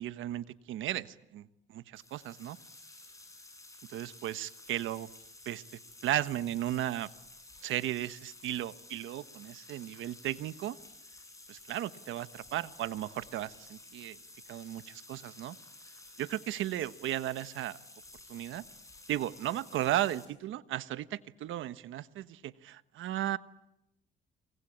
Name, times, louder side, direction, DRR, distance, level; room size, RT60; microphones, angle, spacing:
voice 1, 0.0-2.6 3.9-5.1 5.4-5.6 6.0-7.1 7.6-10.8 11.5-14.2 14.5-15.6 16.2-17.8 18.3-18.6 19.1-23.4, right 13 dB, 85° right, 13 dB, 1.2 m, -35 dB
sound 1, 1.9-20.2, left 2 dB, 15° left, 8.0 m, -53 dB
28.5 x 23.5 x 8.7 m, 0.85 s
cardioid pair, 90°, 20 cm